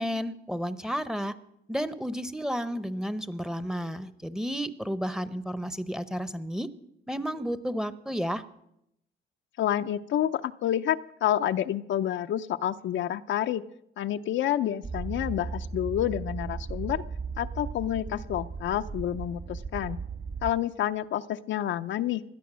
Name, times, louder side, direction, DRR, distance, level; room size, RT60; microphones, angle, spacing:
voice 1, 0.0-1.3 1.7-6.7 7.1-8.4, equal, 5° right, 14 dB, 0.9 m, -32 dB
voice 2, 9.6-13.6 14.0-17.0 17.4-20.0 20.4-22.2, left 11 dB, 70° left, 10 dB, 0.6 m, -29 dB
sound 1, 14.8-20.5, right 4 dB, 40° right, 2.0 m, -36 dB
17.5 x 11.5 x 6.2 m, 0.79 s
cardioid pair, 90°, 20 cm